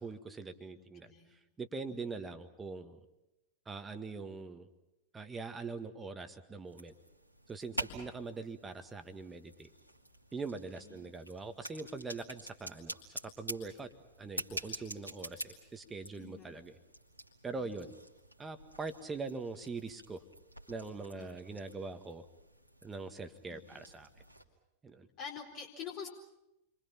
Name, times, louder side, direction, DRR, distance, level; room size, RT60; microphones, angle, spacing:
voice 1, 0.0-3.0 3.6-4.7 5.1-6.9 7.5-9.7 10.3-13.9 14.2-16.8 17.4-17.9 18.4-20.2 20.7-22.2 22.8-24.1 24.8-25.1, right 4 dB, 15° right, 8 dB, 1.8 m, -43 dB
voice 2, 0.7-1.4 1.9-2.2 7.7-8.1 10.7-11.1 16.2-16.6 17.5-17.7 21.1-21.6 23.5-23.8 25.2-26.1, left 6 dB, 40° left, -1 dB, 4.2 m, -48 dB
sound 1, 6.6-24.4, right 1 dB, 90° right, 2.4 m, -48 dB
30.0 x 24.0 x 5.8 m, 0.90 s
figure-of-eight pair, 90°, 0 cm